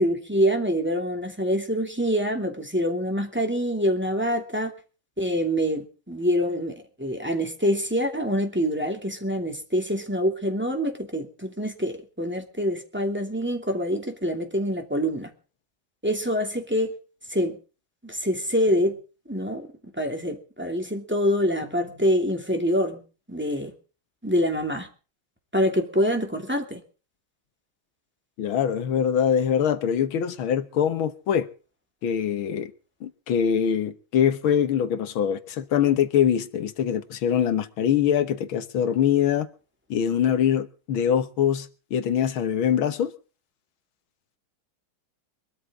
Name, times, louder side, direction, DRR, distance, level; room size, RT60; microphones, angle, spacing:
voice 1, 0.0-4.7 5.2-15.3 16.0-16.9 17.3-17.6 18.0-19.0 19.3-23.0 23.3-23.7 24.2-24.9 25.5-26.8, equal, 5° right, 2.5 m, -25 dB
voice 2, 28.4-31.5 32.0-32.7 33.0-39.5 39.9-43.1, left 9 dB, 80° left, 2.0 m, -23 dB
23.5 x 13.0 x 3.7 m
omnidirectional pair, 2.2 m